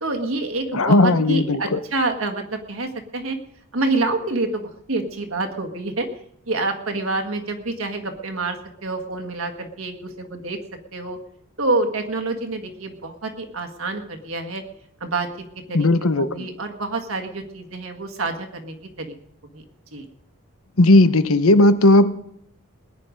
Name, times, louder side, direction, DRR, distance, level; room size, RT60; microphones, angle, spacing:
voice 1, 0.0-3.4 3.7-6.1 6.5-8.6 8.8-10.6 10.9-11.2 11.6-14.6 15.0-15.3 15.7-15.9 16.2-19.1 19.5-19.6 19.9-20.1, right 2 dB, 70° right, 1.7 m, -27 dB
voice 2, 0.7-1.8 15.7-16.5 20.8-22.1, left 2 dB, 85° left, 1.0 m, -16 dB
20.0 x 9.8 x 5.2 m
head